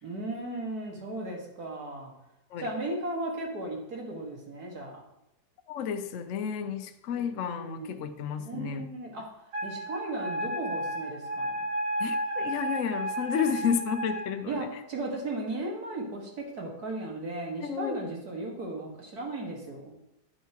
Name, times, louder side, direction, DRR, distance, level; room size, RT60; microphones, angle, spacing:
voice 1, 0.0-2.1 2.6-5.0 7.5-8.0 8.4-11.6 14.5-19.9, right 2 dB, 60° right, 0 dB, 2.3 m, -36 dB
voice 2, 5.7-8.9 12.0-14.7 17.6-18.1, left 7 dB, 60° left, 7 dB, 0.9 m, -32 dB
Wind instrument woodwind instrument, 9.5-14.2, right 1 dB, 75° right, 2.3 m, -32 dB
9.5 x 9.1 x 2.9 m, 0.89 s
omnidirectional pair, 1.9 m